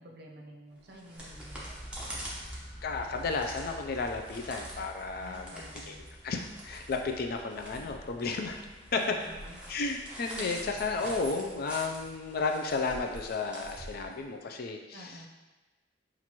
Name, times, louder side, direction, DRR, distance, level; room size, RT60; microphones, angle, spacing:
voice 1, 0.0-1.7 5.2-6.1 8.9-9.6 14.9-15.3, right 1 dB, 60° right, 0 dB, 0.6 m, -49 dB
sound 1, 0.8-14.5, right 1 dB, 5° right, 0.8 m, -46 dB
sound 2, 1.2-13.0, equal, 15° left, 1.1 m, -49 dB
voice 2, 2.8-5.9 6.2-8.6 8.9-9.0 9.7-15.1, left 4 dB, 55° left, 3 dB, 0.4 m, -33 dB
6.0 x 2.5 x 2.9 m, 1.1 s
head